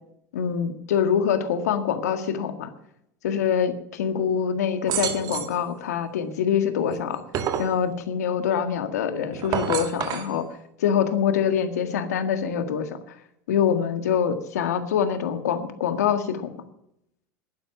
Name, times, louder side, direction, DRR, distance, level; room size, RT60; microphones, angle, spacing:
voice 1, 0.3-2.7 3.2-7.2 7.6-10.5 10.8-12.9 13.5-16.4, left 8 dB, 80° left, 8 dB, 1.7 m, -24 dB
sound 1, 4.9-5.6 6.9-7.8 9.3-10.3, right 9 dB, 50° right, 1.8 m, -28 dB
11.5 x 10.0 x 7.4 m, 0.78 s
hypercardioid pair, 95°, 9 cm